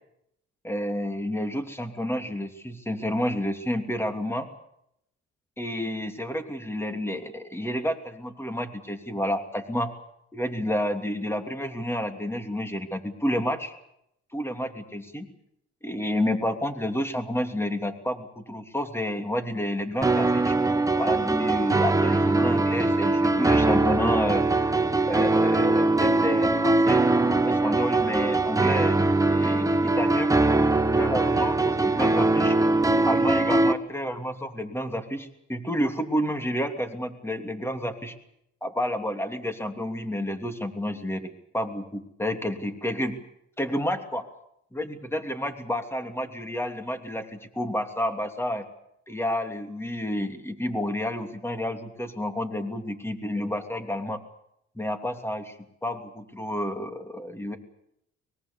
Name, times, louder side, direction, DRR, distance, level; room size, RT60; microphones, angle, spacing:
voice 1, 0.6-4.5 5.6-9.9 10.3-13.7 14.3-15.3 15.8-20.6 21.0-24.4 25.0-29.0 29.3-30.3 30.9-32.6 33.1-38.1 38.6-43.2 43.6-44.3 44.7-48.7 49.1-54.2 54.7-55.5 55.8-57.6, equal, 10° left, 6 dB, 2.9 m, -30 dB
sound 1, 20.0-33.7, right 2 dB, 10° right, 1.2 m, -22 dB
24.0 x 22.0 x 7.1 m, 0.77 s
cardioid pair, 90°, 30 cm